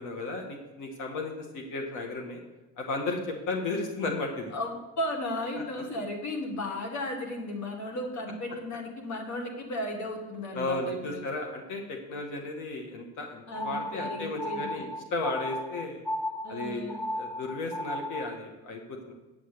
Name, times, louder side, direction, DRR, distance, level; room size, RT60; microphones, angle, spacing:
voice 1, 0.0-2.4 2.8-3.2 3.5-4.5 5.5-5.6 10.5-16.0 16.5-19.1, left 2 dB, 90° left, 1 dB, 1.5 m, -34 dB
voice 2, 4.5-11.2 13.5-14.9 16.4-17.0, left 1 dB, 70° left, 1 dB, 1.6 m, -35 dB
sound 1, 13.5-18.4, left 1 dB, 5° left, 0.4 m, -35 dB
9.1 x 6.5 x 6.7 m, 1.1 s
cardioid pair, 90°, 30 cm